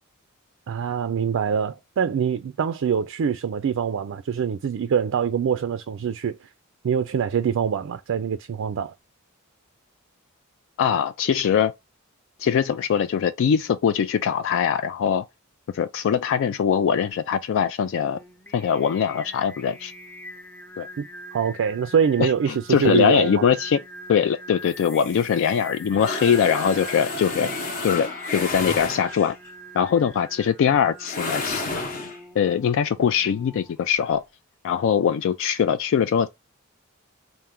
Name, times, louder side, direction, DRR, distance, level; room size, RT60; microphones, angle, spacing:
voice 1, 0.7-6.4 6.8-8.9 21.0-21.1 21.3-23.4, right 7 dB, 65° right, 0.4 m, -24 dB
voice 2, 10.8-11.7 12.4-15.2 15.7-18.2 18.5-19.9 20.8-20.9 22.2-23.8 24.1-27.5 27.8-29.4 29.7-31.7 32.4-34.2 34.6-36.3, left 7 dB, 65° left, 0.3 m, -22 dB
Singing, 17.9-34.2, left 1 dB, 5° left, 0.5 m, -43 dB
sound 1, 24.7-29.5 31.0-32.2, left 3 dB, 40° left, 0.8 m, -31 dB
4.3 x 2.1 x 3.6 m
head